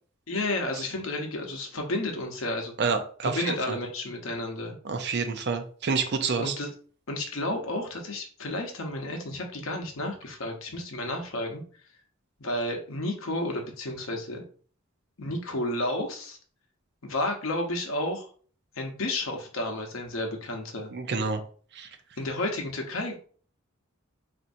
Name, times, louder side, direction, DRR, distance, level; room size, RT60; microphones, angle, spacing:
voice 1, 0.3-2.8 3.2-4.7 6.4-6.7 7.1-11.6 12.4-14.4 15.2-16.4 17.0-18.3 18.8-20.9 22.2-23.1, left 1 dB, 75° left, 2 dB, 0.9 m, -31 dB
voice 2, 2.8-3.8 4.8-6.6 20.9-21.4 21.7-21.9, right 4 dB, 55° right, 7 dB, 0.5 m, -28 dB
4.3 x 2.6 x 2.6 m, 0.44 s
head